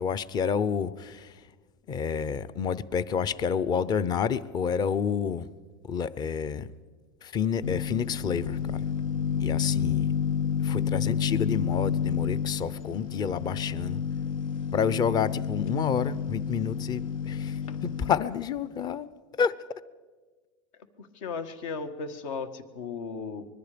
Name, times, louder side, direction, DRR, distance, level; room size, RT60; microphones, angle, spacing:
voice 1, 0.0-1.4 1.9-5.5 5.8-6.7 7.2-8.8 9.4-10.1 10.6-14.0 14.7-19.1 19.4-19.6, left 7 dB, 25° left, 17 dB, 0.6 m, -29 dB
sound 1, 7.6-18.2, left 7 dB, 90° left, 1.2 m, -30 dB
voice 2, 21.0-23.5, left 5 dB, 70° left, 10 dB, 1.9 m, -36 dB
25.0 x 21.0 x 5.1 m, 1.4 s
supercardioid pair, 135°, 17 cm